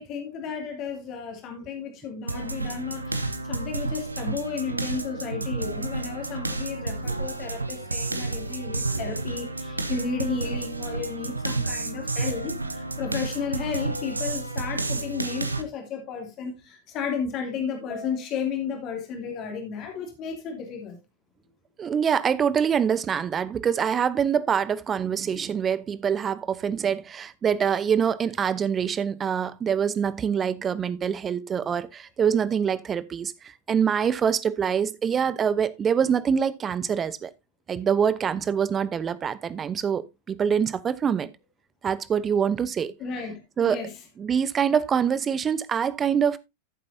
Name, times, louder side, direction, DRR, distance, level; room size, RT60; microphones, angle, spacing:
voice 1, 0.0-21.0 43.0-43.9, left 6 dB, 35° left, 2.7 m, -33 dB
sound 1, 2.3-15.6, right 2 dB, 80° right, 1.1 m, -31 dB
voice 2, 21.8-37.3 37.7-41.3 41.8-42.9 43.6-43.8 44.2-46.4, right 7 dB, 20° right, 0.8 m, -25 dB
13.5 x 7.5 x 2.7 m
figure-of-eight pair, 90°, 0 cm